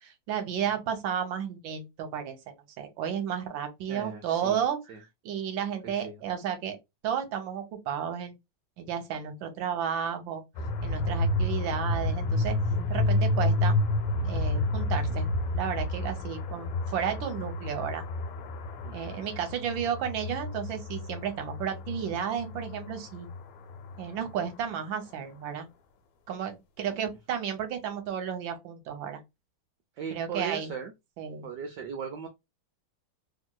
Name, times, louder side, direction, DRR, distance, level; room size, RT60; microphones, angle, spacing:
voice 1, 0.0-4.8 5.2-6.8 7.0-8.4 8.8-10.4 10.8-12.6 12.9-13.8 14.2-18.1 18.9-23.3 24.0-25.7 26.3-29.2 30.1-30.7 31.2-31.5, right 8 dB, 75° right, 1.3 m, -33 dB
voice 2, 3.9-4.6 4.9-5.0 5.8-6.2 18.8-19.1 30.0-30.9 31.4-32.3, right 6 dB, 90° right, 0.9 m, -38 dB
sound 1, 10.6-24.5, left 2 dB, 80° left, 1.5 m, -30 dB
3.1 x 2.8 x 2.2 m
omnidirectional pair, 2.4 m